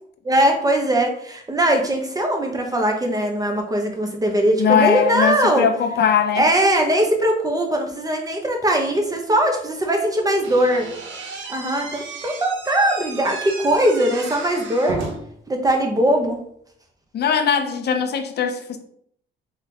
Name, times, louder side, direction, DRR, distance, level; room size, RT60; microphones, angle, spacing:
voice 1, 0.2-5.7 6.3-10.9 11.5-15.0 15.5-16.4, right 1 dB, 20° right, 2 dB, 1.0 m, -20 dB
voice 2, 4.6-6.5 17.1-18.8, left 7 dB, 55° left, 7 dB, 0.6 m, -20 dB
Slam / Squeak, 10.4-15.4, right 4 dB, 70° right, 0.9 m, -34 dB
3.5 x 3.1 x 3.5 m, 0.67 s
cardioid pair, 90°, 20 cm